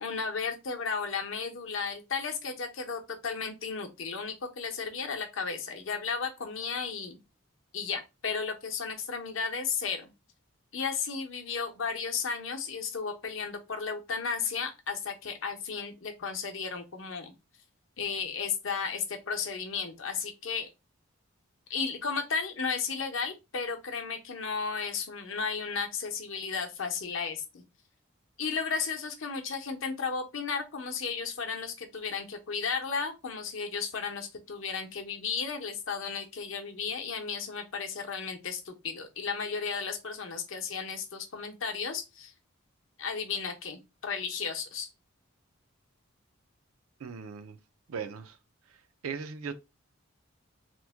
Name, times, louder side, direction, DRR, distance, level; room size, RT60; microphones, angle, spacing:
voice 1, 0.0-7.2 7.7-10.1 10.7-17.3 18.0-20.7 21.7-27.6 28.4-42.3 43.0-44.9, left 5 dB, 65° left, 0.7 m, -34 dB
voice 2, 47.0-47.6 47.9-48.4 49.0-49.5, right 6 dB, 80° right, 0.4 m, -38 dB
3.0 x 2.1 x 3.4 m
head